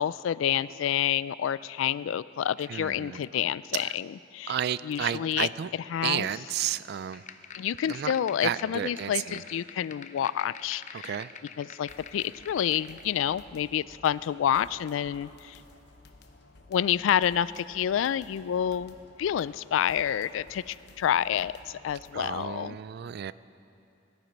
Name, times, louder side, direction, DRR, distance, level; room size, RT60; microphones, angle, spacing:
voice 1, 0.0-4.6 4.8-5.5 5.9-6.3 7.5-11.1 11.6-15.6 16.7-22.8, left 9 dB, 90° left, 20 dB, 0.3 m, -28 dB
voice 2, 2.7-3.2 3.7-3.9 4.5-5.7 6.0-7.2 7.9-8.1 8.4-9.4 10.9-11.3 22.1-23.3, right 10 dB, 55° right, 17 dB, 0.3 m, -32 dB
sound 1, 7.1-13.1, left 6 dB, 40° left, 0.6 m, -47 dB
sound 2, 11.9-22.6, left 2 dB, 60° left, 1.0 m, -55 dB
18.0 x 11.0 x 5.2 m, 2.7 s
head